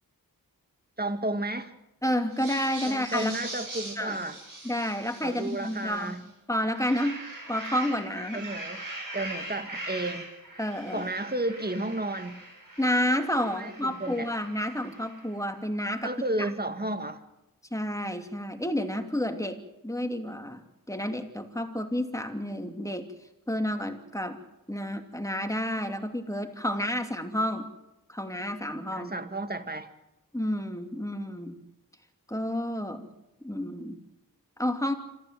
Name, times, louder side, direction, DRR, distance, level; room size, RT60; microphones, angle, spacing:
voice 1, 1.0-1.7 2.9-4.4 5.2-6.3 8.3-10.3 10.9-12.5 13.5-14.3 16.0-17.2 28.9-29.9, right 2 dB, 25° right, 8 dB, 2.1 m, -32 dB
voice 2, 2.0-3.4 4.0-4.2 4.6-6.2 6.5-7.2 7.5-8.4 10.6-11.1 12.8-16.1 16.4-16.5 17.7-19.6 19.8-20.6 20.9-23.1 23.5-24.4 24.7-27.7 28.1-29.1 30.3-31.6 32.3-33.1 33.4-34.0 34.6-34.9, left 1 dB, 10° left, 5 dB, 2.8 m, -30 dB
sound 1, 2.3-6.2 6.6-15.3, right 1 dB, 65° right, 7.3 m, -41 dB
26.5 x 14.5 x 7.7 m, 0.93 s
wide cardioid pair, 45°, 36 cm